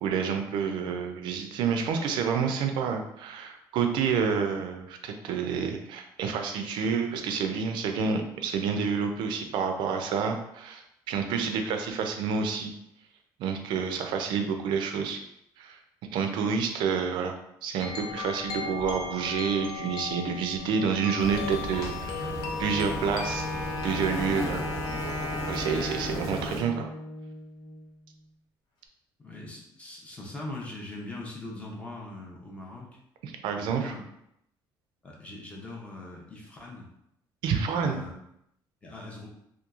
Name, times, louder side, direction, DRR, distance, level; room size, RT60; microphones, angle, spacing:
voice 1, 0.0-12.7 13.4-15.2 15.6-15.8 16.1-22.3 22.6-23.5 23.8-24.7 25.5-26.9 33.2-33.9 37.4-38.0, right 6 dB, 75° right, 5 dB, 0.4 m, -29 dB
sound 1, 17.8-25.6, left 5 dB, 70° left, 0.4 m, -37 dB
sound 2, 21.2-26.6, right 1 dB, 45° left, 0.9 m, -37 dB
Wind instrument woodwind instrument, 22.1-27.9, left 1 dB, 85° left, 1.1 m, -36 dB
voice 2, 29.2-32.9 33.5-34.0 35.0-36.9 37.6-38.1 38.8-39.3, left 2 dB, 15° left, -2 dB, 0.5 m, -41 dB
2.9 x 2.2 x 2.4 m, 0.78 s
cardioid pair, 155°, 8 cm